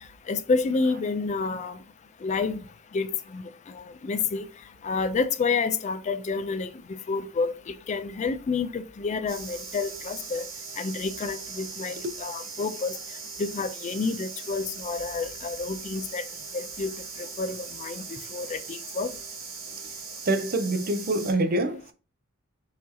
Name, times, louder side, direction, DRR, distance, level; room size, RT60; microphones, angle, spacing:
voice 1, 0.3-1.8 2.2-2.6 2.9-3.1 3.3-3.4 3.7-4.5 4.8-6.7 7.1-7.5 7.9-10.4 10.8-13.0 13.4-16.2 16.5-16.9 17.4-18.0 18.3-19.1, left 4 dB, 35° left, 0.4 m, -29 dB
sound 1, 9.3-21.3, right 5 dB, 75° right, 2.2 m, -40 dB
voice 2, 20.3-21.9, right 1 dB, 45° right, 0.6 m, -25 dB
4.9 x 2.7 x 4.0 m
head